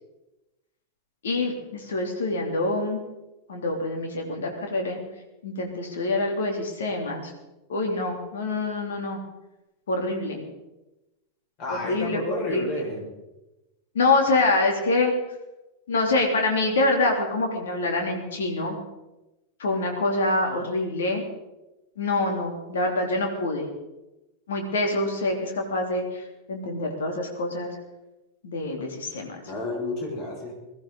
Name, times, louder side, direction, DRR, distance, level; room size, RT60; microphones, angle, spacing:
voice 1, 1.2-3.0 3.5-5.0 5.4-7.3 7.7-9.2 9.9-10.4 11.8-12.2 12.5-12.8 13.9-15.1 15.9-18.8 19.6-21.2 22.0-23.7 24.5-26.2 26.5-27.7 28.4-29.4, left 2 dB, 65° left, 3 dB, 3.3 m, -25 dB
voice 2, 11.6-13.0 29.4-30.5, left 2 dB, 40° left, -1 dB, 6.1 m, -30 dB
21.0 x 14.5 x 4.2 m, 0.99 s
figure-of-eight pair, 90°, 0 cm